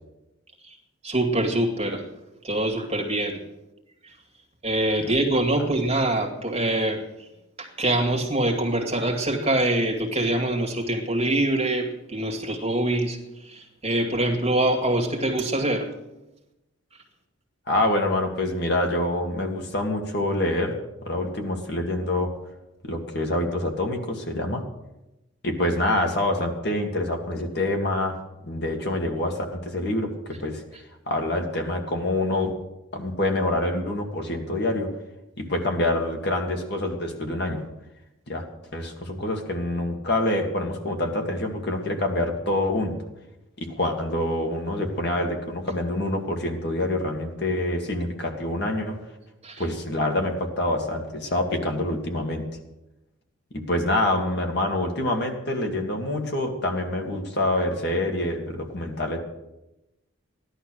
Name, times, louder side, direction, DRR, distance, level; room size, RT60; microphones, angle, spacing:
voice 1, 1.0-2.1 2.4-3.4 4.0-4.2 4.6-7.3 7.6-15.9 49.4-49.6, right 1 dB, 30° right, 1 dB, 2.2 m, -24 dB
voice 2, 17.7-20.7 21.0-22.3 22.8-24.6 25.4-28.2 28.5-30.1 30.4-30.6 31.1-32.5 32.9-34.9 35.4-37.6 38.3-38.4 38.7-42.9 43.6-48.9 49.6-52.4 53.5-59.2, left 1 dB, 55° left, 3 dB, 2.1 m, -26 dB
16.0 x 11.5 x 6.4 m, 0.95 s
head